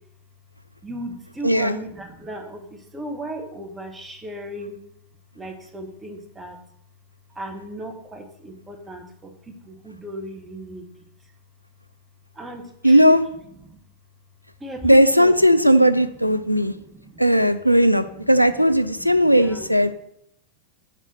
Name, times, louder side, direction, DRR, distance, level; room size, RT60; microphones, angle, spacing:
voice 1, 0.8-4.8 5.3-6.6 7.3-11.1 12.3-13.2 13.6-13.8 14.6-17.3 17.8-19.9, right 1 dB, 15° right, 2 dB, 1.0 m, -37 dB
voice 2, 1.4-1.8 12.8-13.2 14.8-16.7 17.2-19.9, equal, 90° left, 11 dB, 0.3 m, -16 dB
6.1 x 3.9 x 4.1 m, 0.73 s
figure-of-eight pair, 90°, 0 cm